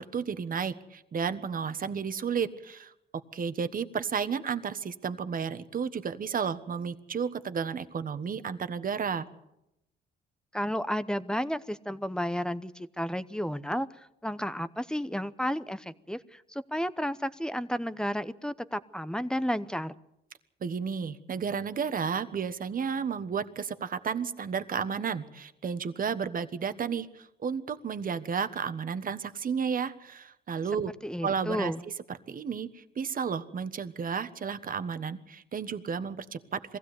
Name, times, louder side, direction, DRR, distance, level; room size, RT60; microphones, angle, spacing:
voice 1, 0.0-2.9 3.3-9.3 20.6-30.9 31.2-31.9 32.3-36.8, right 6 dB, 45° right, 11 dB, 1.3 m, -32 dB
voice 2, 10.5-13.9 14.2-19.9 31.0-31.8, equal, 5° left, 14 dB, 0.8 m, -32 dB
22.5 x 16.0 x 8.3 m, 0.85 s
cardioid pair, 90°, 20 cm